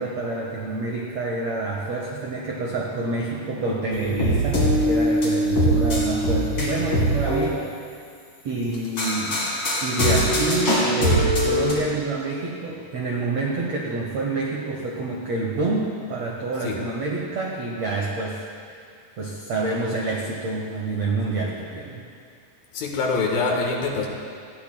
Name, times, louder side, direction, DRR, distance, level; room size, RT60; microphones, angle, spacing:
voice 1, 0.0-7.6 8.4-9.5 9.8-18.4 19.2-22.0, right 3 dB, 85° right, -2 dB, 1.4 m, -28 dB
sound 1, 3.9-7.4 8.7-11.7, equal, 30° left, 4.1 m, -21 dB
voice 2, 22.7-24.1, left 3 dB, 65° left, 0 dB, 3.0 m, -24 dB
20.0 x 15.0 x 2.3 m, 2.2 s
omnidirectional pair, 4.7 m